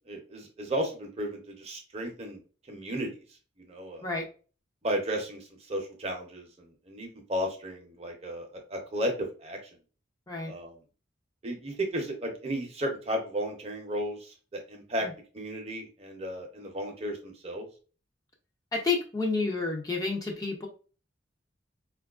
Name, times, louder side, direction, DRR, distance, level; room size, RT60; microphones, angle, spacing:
voice 1, 0.1-2.4 2.7-3.1 3.7-4.1 4.8-9.6 10.5-10.7 11.4-15.1 15.3-17.6, equal, 30° right, 2 dB, 0.6 m, -34 dB
voice 2, 18.7-20.7, left 4 dB, 20° left, 0 dB, 0.5 m, -30 dB
4.3 x 2.3 x 2.3 m, 0.37 s
head